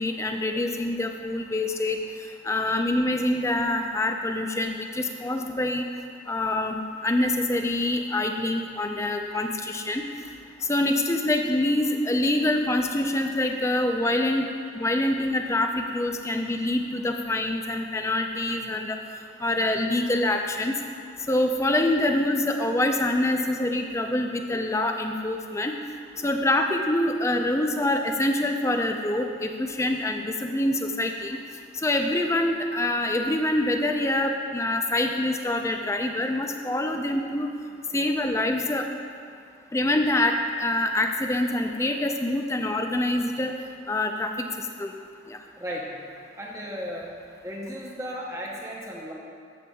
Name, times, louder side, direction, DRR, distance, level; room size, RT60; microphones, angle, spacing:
voice 1, 0.0-2.0 2.4-5.8 6.3-6.8 7.0-10.0 10.7-14.5 14.7-19.0 19.4-20.8 21.3-25.7 26.2-31.4 31.8-37.5 37.9-38.9 39.7-43.5 43.9-44.5 44.8-44.9 45.3-45.4, left 1 dB, 15° left, 4 dB, 0.4 m, -25 dB
voice 2, 45.6-46.0 46.4-47.1 47.4-49.1, equal, 15° right, -3 dB, 0.7 m, -35 dB
13.0 x 6.8 x 2.3 m, 2.3 s
head